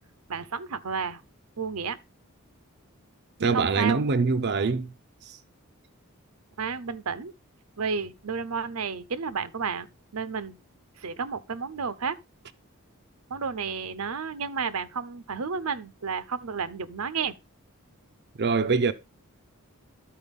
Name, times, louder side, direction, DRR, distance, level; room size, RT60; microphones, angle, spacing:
voice 1, 0.3-1.2 1.6-2.0 3.4-4.0 6.6-7.3 7.8-9.9 10.1-10.6 11.0-12.2 13.3-17.4, right 5 dB, 80° right, 0.8 m, -31 dB
voice 2, 3.4-4.9 5.2-5.4 18.4-18.9, right 4 dB, 50° right, 0.6 m, -24 dB
12.5 x 4.5 x 5.3 m
head